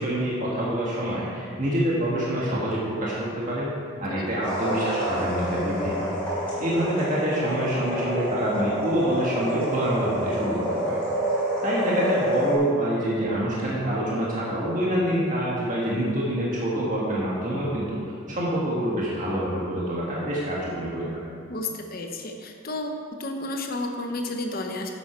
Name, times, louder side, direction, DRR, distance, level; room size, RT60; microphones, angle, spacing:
voice 1, 0.0-3.7 4.0-6.1 6.6-11.0 11.6-18.0 18.3-21.3, right 1 dB, 35° right, -6 dB, 1.6 m, -26 dB
sound 1, 4.4-12.5, right 1 dB, 5° left, 2.9 m, -28 dB
voice 2, 21.5-22.9 23.2-24.9, left 2 dB, 45° left, 3 dB, 0.9 m, -31 dB
11.0 x 7.8 x 4.5 m, 2.3 s
head